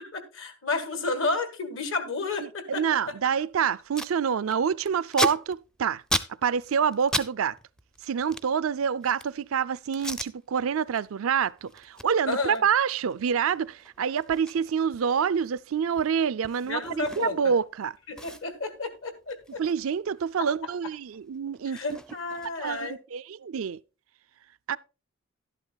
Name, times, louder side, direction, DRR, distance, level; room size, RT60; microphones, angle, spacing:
voice 1, 0.0-3.1 12.3-12.6 16.7-17.4 18.1-19.6 21.7-23.0, left 3 dB, 70° left, 1.7 m, -31 dB
voice 2, 2.4-6.0 6.4-7.6 8.0-17.9 19.6-22.0 22.6-23.8 24.7-24.8, right 7 dB, 80° right, 0.4 m, -27 dB
Packing tape duct tape, 3.4-3.5 3.7-4.1 4.5-7.3 7.6-9.4 9.9-10.3 10.8-11.0 11.3-17.6 17.8-17.9 18.2-20.5 20.8-22.8, equal, 5° left, 0.4 m, -36 dB
12.0 x 11.0 x 2.3 m
head